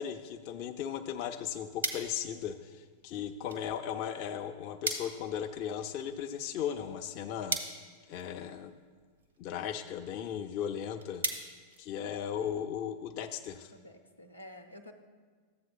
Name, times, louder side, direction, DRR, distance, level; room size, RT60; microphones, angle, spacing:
voice 1, 0.0-7.8 8.1-8.7 9.4-11.2 11.8-13.7, left 9 dB, 40° left, 5 dB, 0.3 m, -37 dB
sound 1, 1.1-12.5, right 3 dB, 75° right, 0.8 m, -42 dB
voice 2, 13.7-14.9, left 1 dB, 85° left, 4 dB, 0.6 m, -51 dB
14.0 x 7.6 x 2.2 m, 1.6 s
figure-of-eight pair, 90°, 0 cm